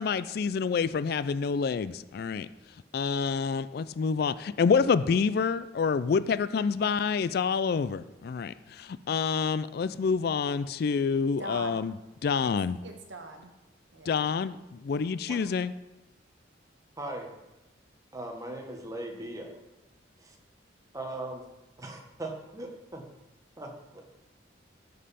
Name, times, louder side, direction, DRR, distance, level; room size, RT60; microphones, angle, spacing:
voice 1, 0.0-2.5 2.9-12.0 12.2-12.8 14.1-15.7, left 5 dB, 55° left, 15 dB, 0.3 m, -27 dB
voice 2, 11.4-11.8 12.4-12.5 12.8-13.5 13.9-14.1, right 1 dB, 70° right, 4 dB, 1.3 m, -41 dB
voice 3, 17.0-17.3 18.1-19.5 20.2-20.3 20.9-21.4 21.8-23.0 23.6-24.1, right 1 dB, 15° right, 2 dB, 1.2 m, -39 dB
12.5 x 5.4 x 4.2 m, 0.98 s
head